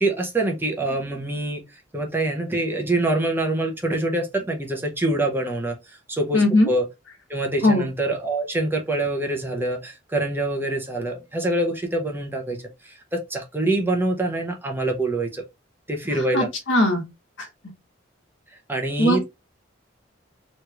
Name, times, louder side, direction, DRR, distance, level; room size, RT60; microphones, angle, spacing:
voice 1, 0.0-1.6 1.9-6.9 7.3-12.6 12.8-15.4 15.9-16.5 18.7-19.2, right 2 dB, 10° right, 0.7 m, -25 dB
voice 2, 6.3-6.7 7.6-7.9 16.3-17.0 17.4-17.5 19.0-19.3, left 1 dB, 85° left, 1.2 m, -19 dB
3.1 x 3.0 x 2.3 m
head